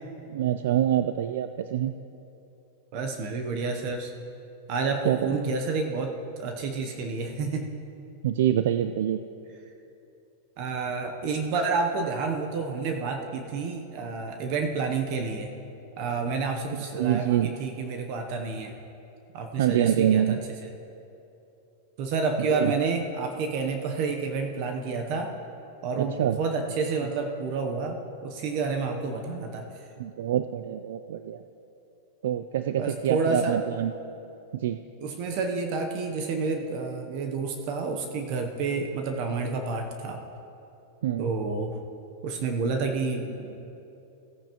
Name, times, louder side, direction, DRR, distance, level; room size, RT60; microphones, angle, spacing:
voice 1, 0.3-1.9 5.1-5.4 8.2-9.2 16.9-17.5 19.6-20.4 22.5-22.7 26.0-26.4 30.0-31.4 32.2-33.9 34.5-34.8 41.0-41.3, right 11 dB, 75° right, 10 dB, 0.3 m, -25 dB
voice 2, 2.9-4.1 4.7-7.7 10.6-15.5 16.0-18.7 19.3-20.4 20.6-20.7 22.0-25.3 25.8-29.7 32.7-33.6 35.0-40.2 41.2-41.8 42.2-43.5, right 4 dB, 45° right, 4 dB, 0.8 m, -29 dB
16.5 x 9.0 x 3.0 m, 2.8 s
supercardioid pair, 160°, 0 cm